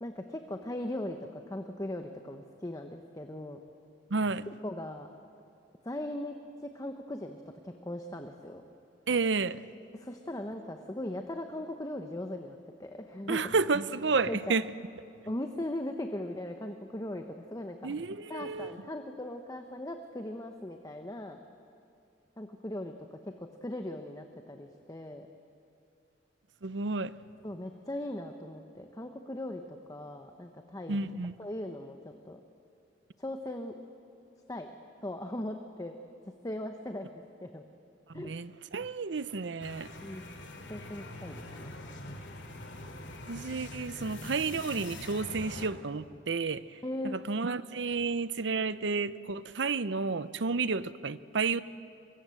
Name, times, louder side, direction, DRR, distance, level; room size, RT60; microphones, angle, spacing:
voice 1, 0.0-3.6 4.6-5.1 5.8-6.3 6.6-7.4 7.6-8.6 9.9-13.4 14.3-14.6 15.3-17.2 17.5-17.9 18.3-21.4 22.4-25.3 27.4-31.0 31.4-32.0 32.3-32.4 33.2-33.7 34.5-34.7 35.0-36.0 36.4-37.1 37.4-37.6 38.1-38.3 40.0-40.2 40.7-41.7 46.8-47.2, left 1 dB, 20° left, 5 dB, 1.0 m, -39 dB
voice 2, 4.1-4.5 9.1-9.6 13.3-14.6 17.8-18.7 26.6-27.1 30.9-31.4 38.1-39.9 43.3-46.8 47.0-51.6, right 4 dB, 70° right, 15 dB, 0.7 m, -31 dB
sound 1, 39.6-45.7, left 2 dB, 75° left, 2.7 m, -44 dB
24.0 x 23.0 x 7.8 m, 2.6 s
head